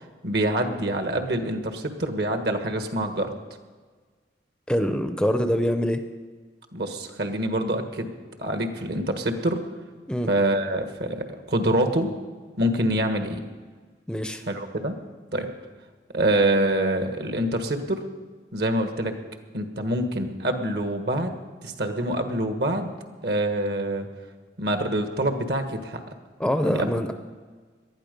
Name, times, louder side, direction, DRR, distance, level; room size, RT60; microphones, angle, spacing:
voice 1, 0.0-3.3 6.7-8.1 8.4-9.6 10.3-12.1 12.6-13.4 14.5-15.0 15.3-15.5 16.1-18.1 18.5-19.2 19.5-21.4 21.6-22.9 23.2-24.1 24.6-26.0 26.6-26.9, right 1 dB, 65° right, 6 dB, 1.5 m, -25 dB
voice 2, 4.7-6.0 10.1-10.3 14.1-14.4 26.4-27.1, equal, 5° left, 8 dB, 0.6 m, -24 dB
19.0 x 12.0 x 5.3 m, 1.5 s
head